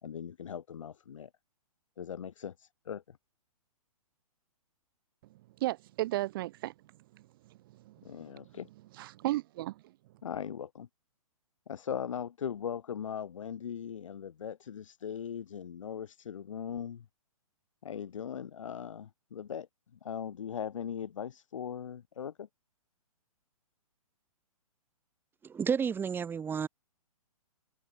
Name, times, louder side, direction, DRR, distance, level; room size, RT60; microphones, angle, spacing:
voice 1, 0.0-1.3 2.0-3.2 8.0-8.7 10.2-10.9 11.7-17.1 17.8-22.5, left 8 dB, 60° left, 3.5 m, -39 dB
voice 2, 5.6-6.7 7.9-8.0 8.9-9.8, right 17 dB, 40° right, 0.8 m, -33 dB
voice 3, 25.5-26.7, right 6 dB, 10° right, 1.4 m, -31 dB
figure-of-eight pair, 120°, 19 cm